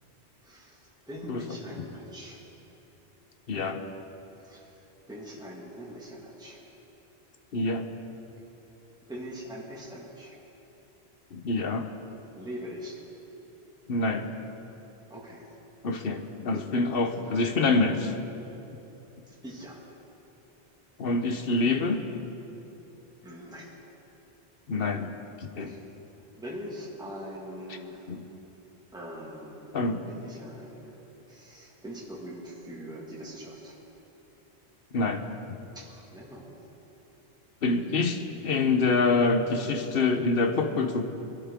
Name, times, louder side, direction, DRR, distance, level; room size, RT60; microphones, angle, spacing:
voice 1, 0.4-0.8 1.1-2.4 4.4-4.7 5.1-6.6 9.1-10.3 12.3-13.0 15.1-15.5 19.4-19.8 23.2-23.7 25.6-25.8 26.3-28.1 28.9-29.7 30.1-31.0 31.3-33.7 35.8-36.6, equal, 5° right, -4 dB, 1.8 m, -42 dB
voice 2, 1.3-1.9 3.5-3.8 7.5-7.9 11.3-11.9 13.9-14.3 15.8-18.1 21.0-22.0 24.7-25.1 25.4-25.7 27.7-27.8 28.1-28.3 29.7-30.1 34.9-35.2 37.6-41.0, left 3 dB, 60° left, 7 dB, 1.1 m, -26 dB
22.0 x 12.0 x 3.7 m, 3.0 s
omnidirectional pair, 1.1 m